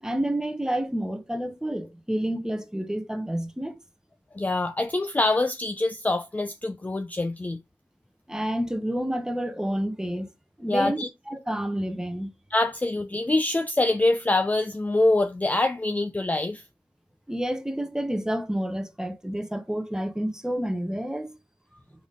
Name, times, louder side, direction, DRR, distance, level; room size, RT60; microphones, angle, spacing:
voice 1, 0.0-3.8 8.3-10.3 10.6-12.3 17.3-21.4, right 1 dB, 5° right, 0.8 m, -29 dB
voice 2, 4.3-7.6 10.7-11.1 12.5-16.6, left 2 dB, 15° left, 0.4 m, -25 dB
3.9 x 3.6 x 3.6 m
cardioid pair, 60°, 10 cm